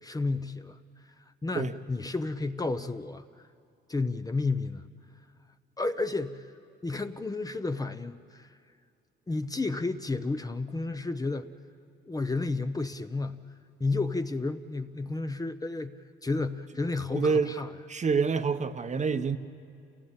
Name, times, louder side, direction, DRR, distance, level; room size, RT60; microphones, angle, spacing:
voice 1, 0.0-0.8 1.4-3.2 3.9-4.8 5.8-6.5 6.8-8.5 9.3-11.5 12.1-13.4 13.8-16.0 16.2-17.7, left 3 dB, 20° left, 9 dB, 0.8 m, -31 dB
voice 2, 17.1-17.6 17.9-19.4, right 5 dB, 35° right, 9 dB, 1.0 m, -27 dB
29.0 x 16.5 x 8.9 m, 2.4 s
cardioid pair, 90°, 20 cm